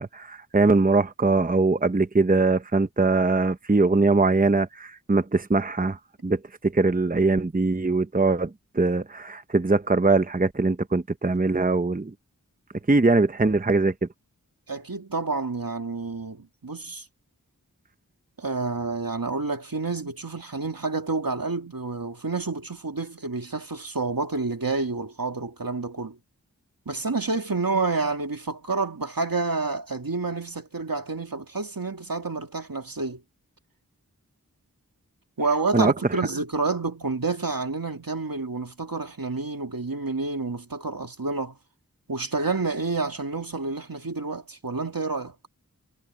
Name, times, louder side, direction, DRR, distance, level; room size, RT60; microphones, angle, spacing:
voice 1, 0.0-12.1 12.9-13.9 35.7-36.2, right 3 dB, 25° right, 0.8 m, -22 dB
voice 2, 14.7-17.0 18.4-26.2 26.9-33.2 35.4-41.6 42.1-45.3, right 3 dB, 80° right, 2.6 m, -29 dB
wide cardioid pair, 45°, 34 cm